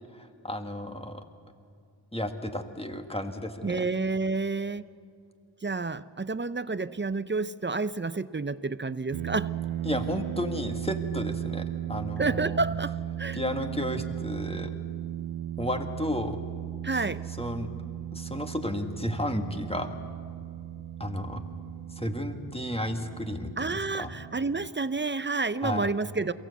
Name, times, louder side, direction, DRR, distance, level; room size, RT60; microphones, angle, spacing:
voice 1, 0.1-1.2 2.1-3.9 9.8-12.6 13.3-14.7 15.6-16.4 16.9-17.1 17.4-17.7 18.1-20.0 21.0-21.4 22.0-24.1 25.6-25.9, left 1 dB, 15° left, 6 dB, 1.8 m, -33 dB
voice 2, 3.6-4.8 5.6-9.5 12.2-13.4 16.8-17.2 23.6-26.3, right 3 dB, 25° right, 15 dB, 0.6 m, -29 dB
sound 1, 9.1-24.7, right 12 dB, 80° right, 0.6 m, -36 dB
22.5 x 16.0 x 8.2 m, 2.4 s
cardioid pair, 40°, 45 cm